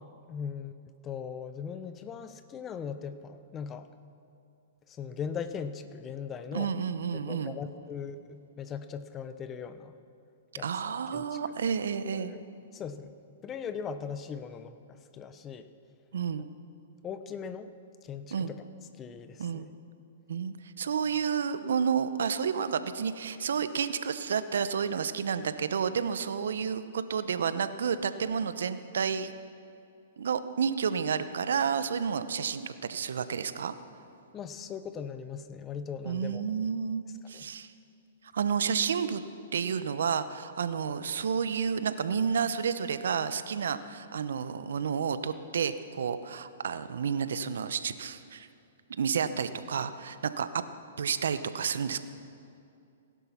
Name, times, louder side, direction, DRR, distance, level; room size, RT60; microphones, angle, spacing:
voice 1, 0.0-3.9 4.9-6.7 7.1-9.9 10.6-10.7 11.1-11.4 12.1-12.4 12.7-13.1 13.4-15.7 17.0-17.7 18.0-18.6 19.0-19.7 34.3-36.4 37.3-37.5, left 7 dB, 25° left, 11 dB, 0.9 m, -39 dB
voice 2, 6.5-7.6 10.6-12.3 16.1-16.5 18.3-18.5 19.4-19.7 20.3-29.3 30.2-33.7 36.0-37.7 38.3-39.2 39.5-48.5 49.0-50.6 51.0-52.0, right 6 dB, 75° right, 12 dB, 0.8 m, -30 dB
17.0 x 11.0 x 5.9 m, 2.5 s
hypercardioid pair, 130°, 0 cm